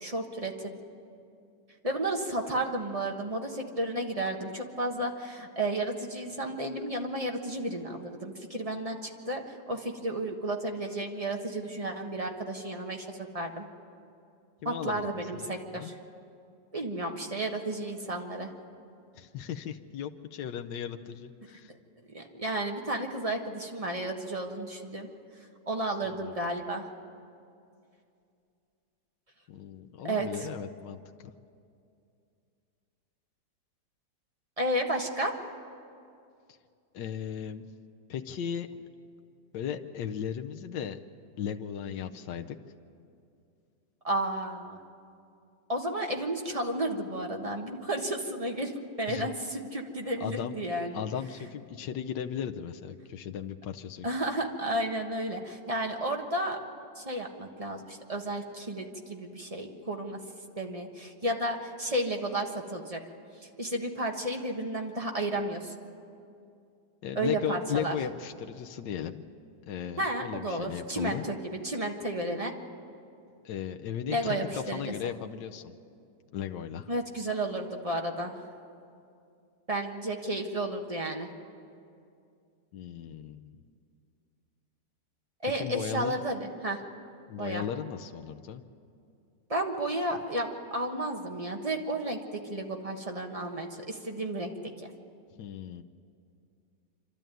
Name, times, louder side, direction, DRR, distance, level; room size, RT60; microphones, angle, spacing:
voice 1, 0.0-0.8 1.8-13.7 14.6-16.0 16.7-18.5 22.1-25.1 25.7-26.9 30.0-30.5 34.6-35.3 44.0-44.8 45.7-51.0 54.0-56.6 56.9-60.2 60.6-63.0 63.6-65.8 67.1-67.9 70.0-72.5 74.1-74.9 76.9-78.3 79.7-81.3 85.4-86.8 87.4-87.6 89.5-94.9, right 1 dB, 20° right, 2 dB, 1.2 m, -32 dB
voice 2, 14.6-15.9 19.2-21.7 26.1-26.3 29.5-31.3 36.9-37.7 38.1-38.7 39.5-41.0 41.4-42.6 49.1-49.3 50.2-50.5 50.9-54.1 67.0-69.2 69.7-71.2 73.4-75.7 76.3-76.9 82.7-83.6 85.4-86.2 87.3-88.6 95.4-95.8, left 8 dB, 85° left, 5 dB, 1.4 m, -36 dB
26.5 x 12.5 x 9.1 m, 2.5 s
omnidirectional pair, 1.9 m